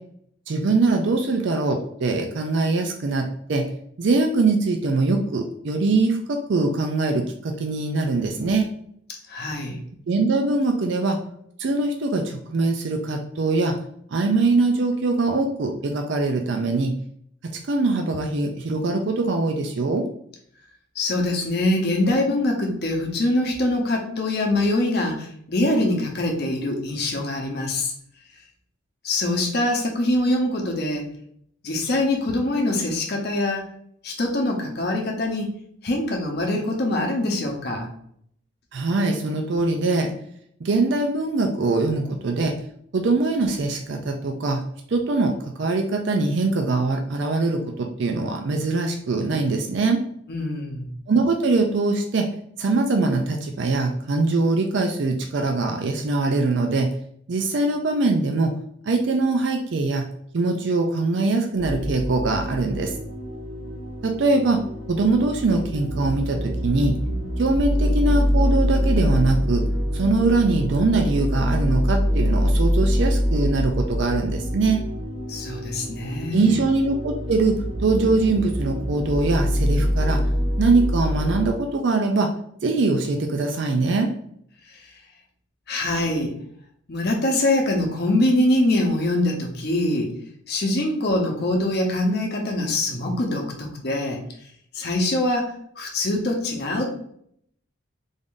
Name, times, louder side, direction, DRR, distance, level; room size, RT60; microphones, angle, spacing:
voice 1, 0.5-3.7 4.0-8.7 10.1-11.2 11.6-13.8 14.1-17.0 17.7-20.1 38.7-40.1 40.6-42.6 42.9-44.6 44.9-50.0 51.1-52.3 52.6-56.9 57.3-58.5 58.8-60.1 60.3-62.9 64.0-64.6 64.9-67.0 67.4-69.7 69.9-74.8 76.3-80.2 80.6-82.3 82.6-84.1, right 3 dB, 55° right, 3 dB, 0.4 m, -22 dB
voice 2, 9.3-9.8 21.0-27.9 29.0-31.1 31.6-33.7 34.0-35.5 35.8-37.9 50.3-50.9 75.3-76.6 84.7-84.9 85.7-86.3 86.9-90.1 90.5-94.2 94.7-96.9, left 1 dB, 50° left, 0 dB, 0.8 m, -24 dB
sound 1, 61.6-81.5, equal, 80° right, 1.3 m, -25 dB
3.5 x 2.6 x 3.7 m, 0.66 s
head